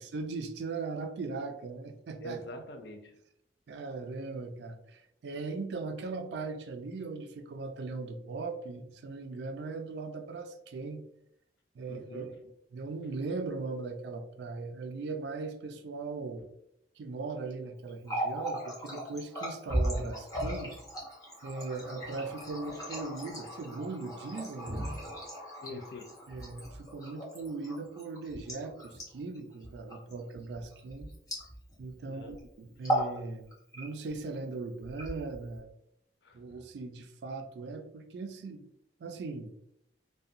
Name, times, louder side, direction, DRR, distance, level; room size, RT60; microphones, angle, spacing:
voice 1, 0.0-2.4 3.7-11.0 11.8-12.3 12.7-16.4 17.0-20.7 21.4-25.0 25.7-25.8 26.3-31.1 31.8-33.4 33.7-35.7 36.3-38.6 39.0-39.5, right 3 dB, 70° right, 6 dB, 0.3 m, -39 dB
voice 2, 2.2-3.2 11.9-12.3 25.6-26.1 32.0-32.4 36.2-36.4, left 1 dB, 70° left, 5 dB, 0.4 m, -44 dB
Water tap faucet, 17.9-31.9 32.2-32.4 32.7-33.2 33.5-34.2 34.8-35.6, right 1 dB, 20° left, 0.7 m, -37 dB
2.7 x 2.2 x 2.5 m, 0.76 s
head